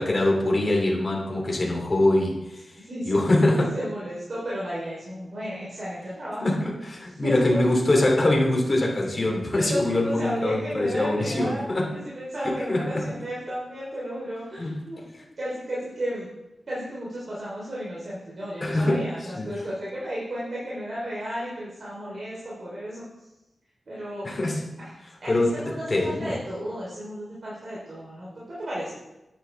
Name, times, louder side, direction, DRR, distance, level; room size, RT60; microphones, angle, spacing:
voice 1, 0.0-2.6 3.0-3.7 6.4-11.9 12.4-13.0 14.6-14.7 18.6-19.0 19.4-19.5 24.2-24.7 25.3-25.5 25.9-26.4, left 1 dB, 40° left, -1 dB, 2.8 m, -23 dB
voice 2, 2.8-6.7 7.0-7.6 9.5-11.6 11.9-16.3 16.7-23.3 23.9-24.3 24.8-29.0, equal, 55° right, -8 dB, 3.4 m, -33 dB
9.8 x 9.4 x 3.4 m, 0.97 s
cardioid pair, 70°, 0 cm